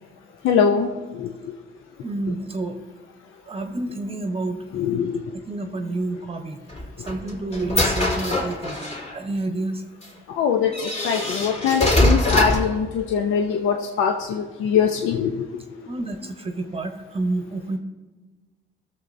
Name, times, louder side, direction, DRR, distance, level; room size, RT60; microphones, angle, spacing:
voice 1, 0.4-0.9 4.7-5.1 10.4-10.7 11.0-15.3, left 7 dB, 80° left, 3 dB, 0.7 m, -22 dB
voice 2, 2.0-2.8 3.5-4.6 5.4-6.6 7.0-9.8 15.9-17.8, right 2 dB, 30° right, 6 dB, 0.9 m, -29 dB
sound 1, 6.7-9.2 10.0-10.1 10.7-12.8, left 1 dB, 30° left, 2.8 m, -22 dB
19.0 x 7.0 x 2.6 m, 1.3 s
cardioid pair, 90°, 20 cm